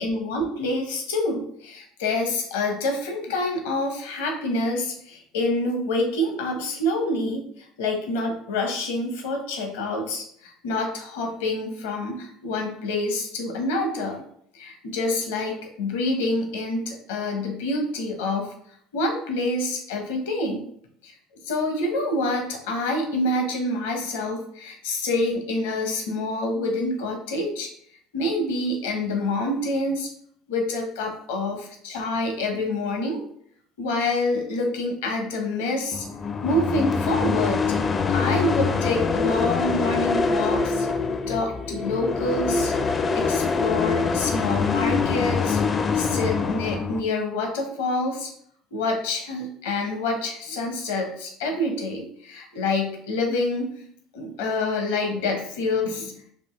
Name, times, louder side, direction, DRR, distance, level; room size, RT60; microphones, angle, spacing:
voice 1, 0.0-14.2 14.5-18.5 18.9-20.6 21.0-21.1 21.4-27.7 28.1-30.1 30.5-33.2 33.8-36.0 36.4-37.7 38.1-40.9 41.3-42.7 43.1-45.6 45.9-48.3 48.7-53.7 54.1-56.2, left 2 dB, 85° left, 3 dB, 0.9 m, -27 dB
sound 1, 35.9-47.0, left 5 dB, 35° left, 0.4 m, -24 dB
4.2 x 2.7 x 3.2 m, 0.65 s
hypercardioid pair, 75°, 0 cm